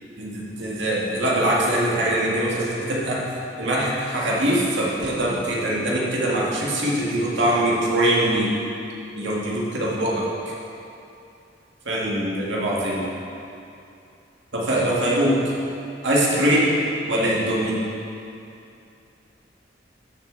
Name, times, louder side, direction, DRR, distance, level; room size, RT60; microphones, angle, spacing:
voice 1, 0.2-3.3 3.6-8.5 9.1-10.5 11.9-13.0 14.5-15.6 16.0-16.8 17.1-17.8, right 1 dB, 80° right, -5 dB, 1.9 m, -22 dB
12.5 x 6.6 x 4.0 m, 2.7 s
head